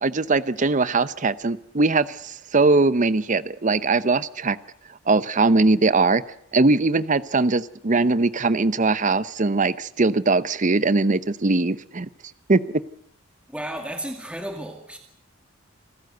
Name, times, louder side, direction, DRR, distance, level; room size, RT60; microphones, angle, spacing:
voice 1, 0.0-4.6 5.1-6.2 6.5-12.1 12.5-12.6, right 3 dB, 40° right, 0.8 m, -21 dB
voice 2, 13.5-15.0, right 1 dB, 5° right, 2.1 m, -33 dB
27.5 x 14.5 x 8.0 m
head